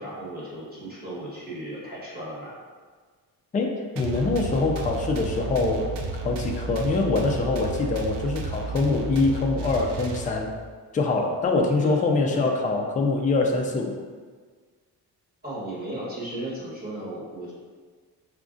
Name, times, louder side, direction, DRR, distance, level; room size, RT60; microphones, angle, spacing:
voice 1, 0.0-2.5 11.8-12.0 12.3-12.5 15.4-17.5, right 1 dB, 20° right, -7 dB, 1.3 m, -35 dB
voice 2, 3.5-5.9 6.2-10.5 10.9-13.9, left 3 dB, 20° left, 1 dB, 0.3 m, -24 dB
sound 1, 4.0-10.7, right 4 dB, 85° right, 0.5 m, -32 dB
5.0 x 2.3 x 2.5 m, 1.5 s
cardioid pair, 120°, 41 cm